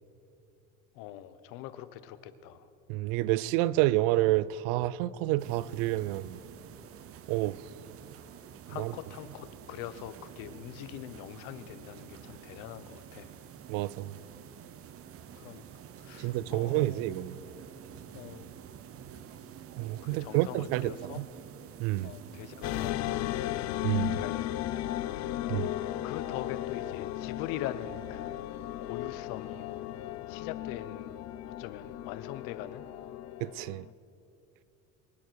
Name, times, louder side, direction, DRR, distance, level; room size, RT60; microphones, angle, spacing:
voice 1, 0.9-2.7 8.7-13.3 15.3-15.6 16.0-17.1 18.1-18.5 20.0-21.2 22.0-23.5 24.1-24.9 25.1-25.7 26.0-28.5 28.8-29.7 30.3-31.2 31.6-32.8, left 11 dB, 75° left, 1.0 m, -43 dB
voice 2, 2.9-6.4 7.3-7.6 8.7-8.9 13.7-14.1 16.2-17.4 19.8-21.3 21.8-22.1 23.8-24.2 25.5-25.7 33.4-33.9, right 16 dB, 80° right, 0.5 m, -29 dB
sound 1, 5.4-22.9, right 9 dB, 45° right, 0.9 m, -49 dB
sound 2, 22.6-33.9, left 13 dB, 55° left, 0.6 m, -35 dB
24.0 x 10.5 x 4.7 m
cardioid pair, 120°, 33 cm